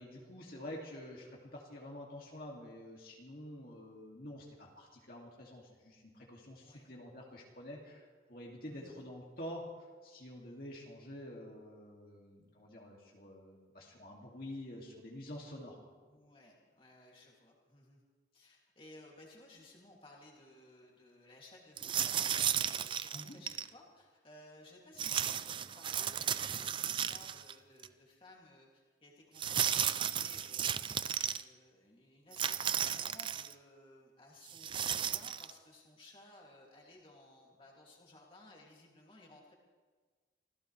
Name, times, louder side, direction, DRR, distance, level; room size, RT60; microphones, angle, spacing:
voice 1, 0.0-15.9 23.1-23.4, left 1 dB, 50° left, -2 dB, 2.4 m, -48 dB
voice 2, 8.6-9.0 16.1-18.0 18.3-30.7 31.2-39.5, left 2 dB, 30° left, -2 dB, 2.6 m, -58 dB
sound 1, 21.8-23.7 25.0-27.5 27.8-27.9 29.4-31.4 32.3-33.5 34.5-35.5, right 9 dB, 25° right, 0.4 m, -34 dB
26.0 x 16.0 x 3.3 m, 1.4 s
head